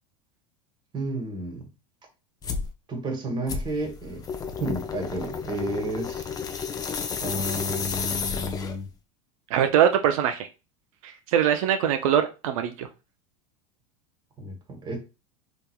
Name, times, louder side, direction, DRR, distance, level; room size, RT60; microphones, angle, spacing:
voice 1, 0.9-1.7 2.9-4.2 4.6-6.2 7.2-8.9 14.4-15.0, right 1 dB, 25° right, 1.2 m, -31 dB
sound 1, 2.4-2.7 3.5-8.9, left 6 dB, 20° left, 0.4 m, -32 dB
voice 2, 9.5-10.5 11.0-12.9, right 9 dB, 80° right, 0.4 m, -22 dB
3.4 x 2.9 x 2.2 m
supercardioid pair, 115°, 17 cm